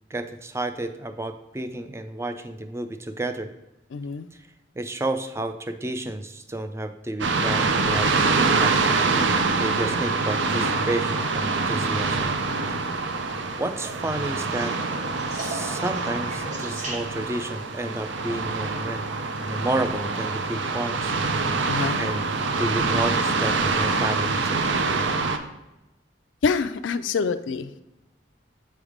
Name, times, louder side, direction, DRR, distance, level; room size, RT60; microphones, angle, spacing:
voice 1, 0.1-3.5 4.8-8.8 9.6-12.4 13.6-14.8 15.3-19.0 19.5-21.1 22.0-22.2 22.6-24.6, right 2 dB, 15° right, 9 dB, 0.4 m, -31 dB
voice 2, 3.9-4.3 21.7-22.0 26.4-27.8, left 5 dB, 90° left, 13 dB, 0.4 m, -26 dB
sound 1, 7.2-25.4, right 4 dB, 80° right, 0.6 m, -25 dB
sound 2, 13.8-17.5 19.6-20.1 21.8-21.9, right 1 dB, 40° right, 1.3 m, -38 dB
7.9 x 3.3 x 5.0 m, 0.96 s
head